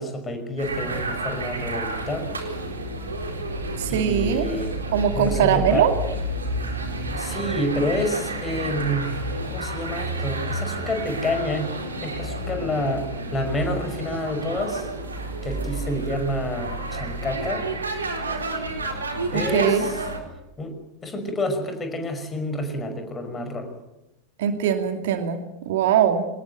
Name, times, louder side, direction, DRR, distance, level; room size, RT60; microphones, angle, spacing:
voice 1, 0.0-2.3 3.9-4.7 5.2-5.8 7.2-9.1 9.4-11.7 12.0-14.9 15.4-17.7 19.3-20.0 20.6-20.7 21.0-23.7, left 1 dB, 15° left, 7 dB, 5.6 m, -28 dB
sound 1, 0.6-20.2, right 2 dB, 75° right, 4.1 m, -30 dB
voice 2, 3.8-4.5 4.9-5.9 19.3-19.9 24.4-26.3, right 9 dB, 55° right, 7 dB, 2.4 m, -21 dB
24.0 x 20.0 x 9.3 m, 0.95 s
figure-of-eight pair, 90°, 0 cm